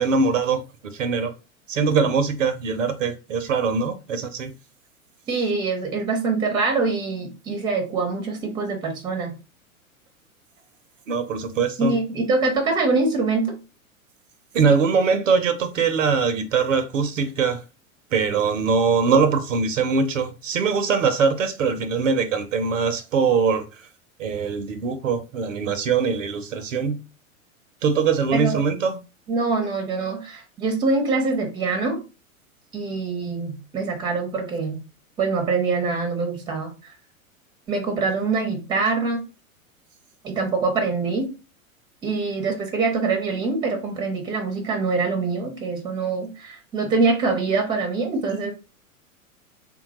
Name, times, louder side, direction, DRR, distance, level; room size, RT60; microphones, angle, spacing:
voice 1, 0.0-1.3 1.7-4.5 11.1-12.0 14.5-17.6 18.1-23.7 24.2-27.0 27.8-29.0, right 5 dB, 60° right, 0.6 m, -22 dB
voice 2, 5.3-9.3 11.8-13.6 28.3-28.6 29.3-32.0 32.7-34.8 35.2-36.9 37.7-39.2 40.2-41.3 42.0-48.5, right 4 dB, 10° right, 0.6 m, -24 dB
3.4 x 2.2 x 2.9 m
figure-of-eight pair, 95°, 43 cm